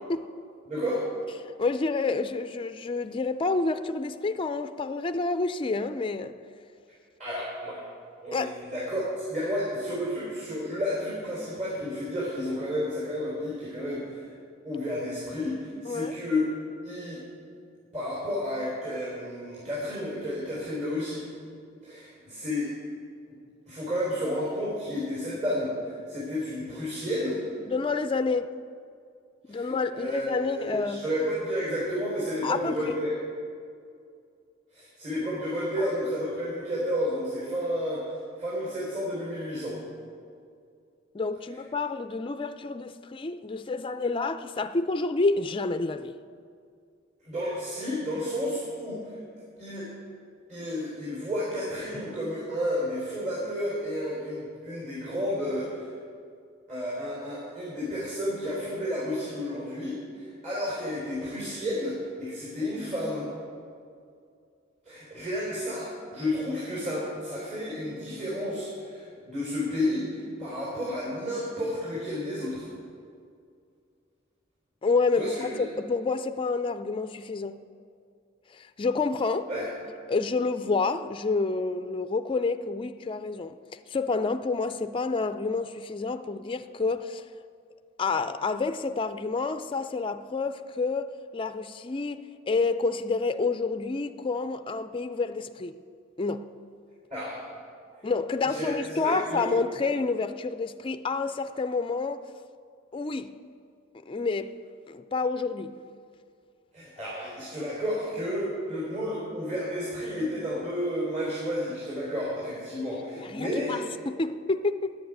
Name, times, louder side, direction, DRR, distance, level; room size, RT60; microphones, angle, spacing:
voice 1, 0.7-1.0 7.2-7.8 8.2-14.3 14.6-16.4 16.8-17.2 17.9-21.3 21.8-22.7 23.3-23.4 23.7-27.4 29.5-33.1 34.7-38.0 38.4-39.8 47.2-49.2 49.6-49.9 50.5-55.9 56.7-63.3 64.8-72.7 75.1-75.6 79.5-79.7 97.1-97.4 98.4-99.5 106.7-113.8, equal, 40° right, 3.9 m, -31 dB
voice 2, 1.4-6.4 8.3-8.6 15.9-16.2 27.7-28.5 29.5-31.0 32.4-32.8 41.1-46.1 74.8-77.6 78.5-79.5 80.1-83.6 83.9-87.2 88.0-95.8 96.2-96.4 98.0-102.2 102.9-103.3 104.1-104.5 104.9-105.7 113.2-115.0, left 3 dB, 25° left, 0.4 m, -29 dB
10.5 x 9.4 x 8.9 m
head